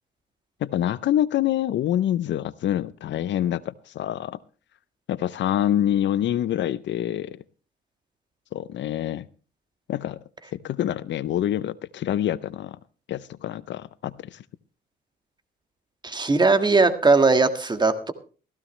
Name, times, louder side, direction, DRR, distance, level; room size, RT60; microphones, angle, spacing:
voice 1, 0.6-4.4 5.1-7.4 8.5-9.3 9.9-10.2 10.5-12.8 13.1-14.4, left 11 dB, 65° left, 0.6 m, -26 dB
voice 2, 16.0-18.1, right 3 dB, 20° right, 1.7 m, -19 dB
16.0 x 15.0 x 3.2 m
cardioid pair, 90°, 20 cm